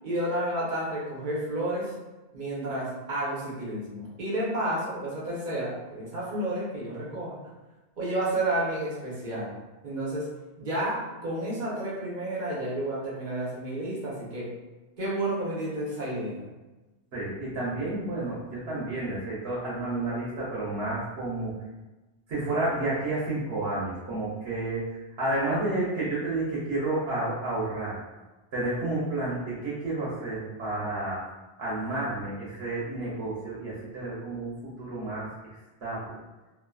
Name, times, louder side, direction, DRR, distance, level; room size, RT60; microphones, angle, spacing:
voice 1, 0.0-1.9 2.3-7.4 8.0-9.5 9.8-10.3 10.6-14.5 15.0-16.5, right 1 dB, 50° right, -7 dB, 0.9 m, -31 dB
voice 2, 17.1-21.5 22.3-24.9 25.2-28.0 28.5-31.2 31.6-35.3 35.8-36.2, right 2 dB, 75° right, -8 dB, 1.1 m, -30 dB
2.6 x 2.5 x 2.2 m, 1.1 s
omnidirectional pair, 1.1 m